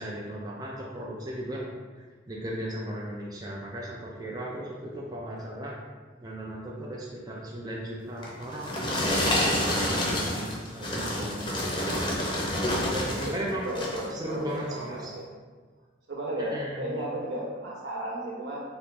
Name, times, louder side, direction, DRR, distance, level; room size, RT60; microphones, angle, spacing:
voice 1, 0.0-1.6 2.3-5.8 6.2-9.1 9.3-11.9 12.7-13.6 14.1-15.1 16.4-16.8, right 1 dB, 20° right, -4 dB, 0.4 m, -37 dB
sound 1, 8.2-13.4 13.7-14.1 14.7-14.8, left 1 dB, 25° left, 0.7 m, -28 dB
voice 2, 13.2-15.3 16.1-18.6, right 1 dB, 70° right, -3 dB, 1.0 m, -34 dB
3.9 x 2.8 x 3.6 m, 1.4 s
head